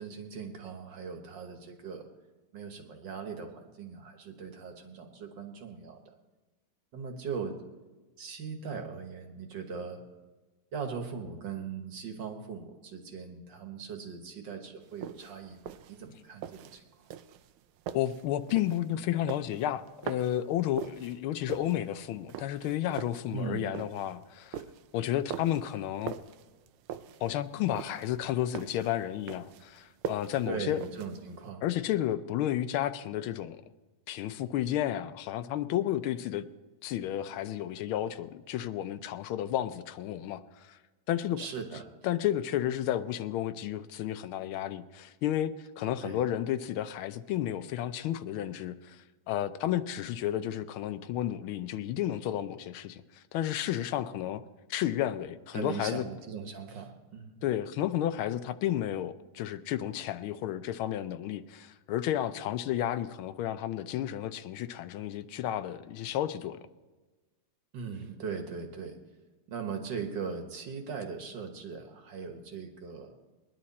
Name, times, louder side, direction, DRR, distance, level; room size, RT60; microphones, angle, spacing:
voice 1, 0.0-2.1 2.5-6.0 6.9-7.6 8.2-10.0 10.7-17.1 23.3-23.7 30.5-31.6 41.4-41.9 46.0-46.2 55.5-57.4 67.7-69.0 69.5-73.2, right 5 dB, 60° right, 1.9 m, -39 dB
sound 1, 14.9-31.5, right 9 dB, 85° right, 1.5 m, -43 dB
voice 2, 17.9-24.6 24.9-26.1 27.2-30.8 31.6-33.6 34.1-36.4 36.8-40.8 41.1-41.4 42.0-54.4 54.7-56.0 57.4-66.6, left 12 dB, 80° left, 1.5 m, -32 dB
20.5 x 11.0 x 4.2 m
omnidirectional pair, 2.3 m